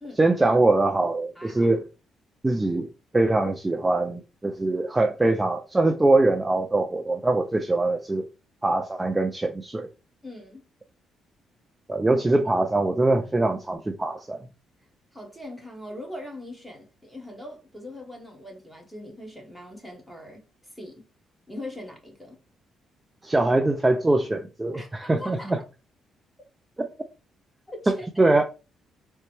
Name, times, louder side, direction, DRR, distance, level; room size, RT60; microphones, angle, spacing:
voice 1, 0.2-1.8 2.4-2.9 3.1-8.3 8.6-9.9 11.9-14.4 23.2-25.6 26.8-26.9 28.2-28.4, right 2 dB, 15° right, 0.4 m, -23 dB
voice 2, 1.3-1.7 10.2-10.6 15.1-21.1 21.5-22.4 24.7-25.5 27.7-28.1, left 1 dB, ahead, 1.3 m, -41 dB
3.8 x 2.2 x 3.0 m
cardioid pair, 90°, 0 cm